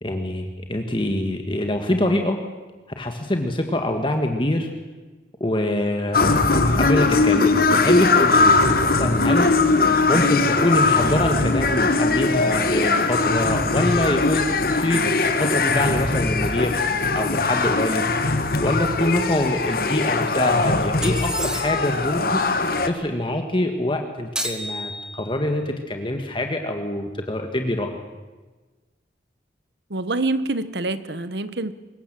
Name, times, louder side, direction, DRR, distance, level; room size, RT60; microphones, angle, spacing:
voice 1, 0.0-2.4 3.0-4.7 5.4-9.8 10.1-18.1 18.6-22.4 22.9-27.9, left 1 dB, 30° left, 4 dB, 1.7 m, -25 dB
sound 1, 6.1-22.9, left 3 dB, 55° left, 1.7 m, -20 dB
sound 2, 21.0-22.0 24.4-25.4, equal, 5° right, 1.9 m, -31 dB
voice 2, 29.9-31.7, right 2 dB, 70° right, 13 dB, 1.2 m, -26 dB
24.5 x 21.5 x 7.6 m, 1.3 s
head